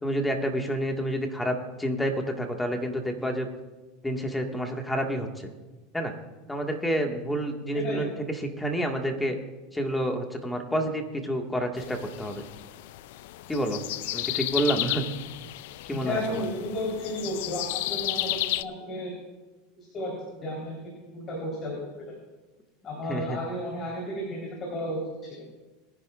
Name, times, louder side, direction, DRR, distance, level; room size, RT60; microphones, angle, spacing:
voice 1, 0.0-3.5 4.0-5.5 5.9-6.1 6.5-9.4 9.7-12.4 13.5-13.8 14.1-15.0 15.9-16.4 23.1-23.4, equal, 10° left, 3 dB, 1.9 m, -29 dB
voice 2, 7.7-8.1 16.0-19.1 19.8-20.2 20.4-20.8 21.1-21.8 22.8-25.3, left 1 dB, 35° left, -3 dB, 4.1 m, -33 dB
sound 1, 11.8-18.6, left 16 dB, 70° left, 0.4 m, -33 dB
22.0 x 10.5 x 2.6 m, 1.2 s
supercardioid pair, 110°, 0 cm